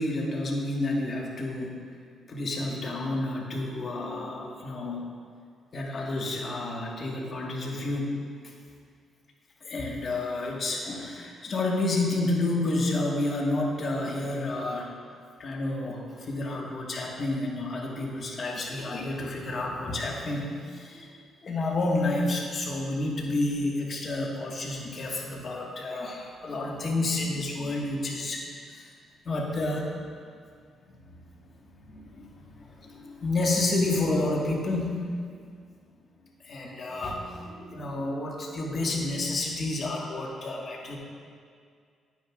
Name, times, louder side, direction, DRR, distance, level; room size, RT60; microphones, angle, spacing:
voice 1, 0.0-1.7 2.3-5.0 5.7-8.1 8.4-8.5 9.6-14.9 15.4-28.9 29.2-29.9 30.9-31.1 31.8-34.9 35.2-35.4 36.4-41.0, left 2 dB, 45° left, -2 dB, 1.5 m, -30 dB
9.8 x 9.0 x 2.4 m, 2.1 s
cardioid pair, 90°, 0 cm